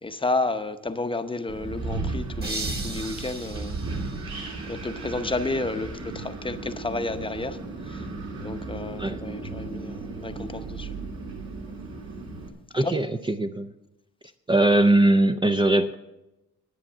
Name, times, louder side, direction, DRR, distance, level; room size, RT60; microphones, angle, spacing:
voice 1, 0.0-3.8 4.6-7.6 7.8-8.1 8.4-11.0 12.8-13.0, left 2 dB, 15° left, 0.8 m, -31 dB
Wind, 1.5-12.5, right 3 dB, 60° right, 2.8 m, -35 dB
sound 1, 2.4-5.2, right 2 dB, 30° right, 2.1 m, -38 dB
voice 2, 12.7-13.7 14.5-15.9, right 1 dB, 15° right, 0.5 m, -21 dB
10.0 x 9.5 x 7.2 m
cardioid pair, 90°, 30 cm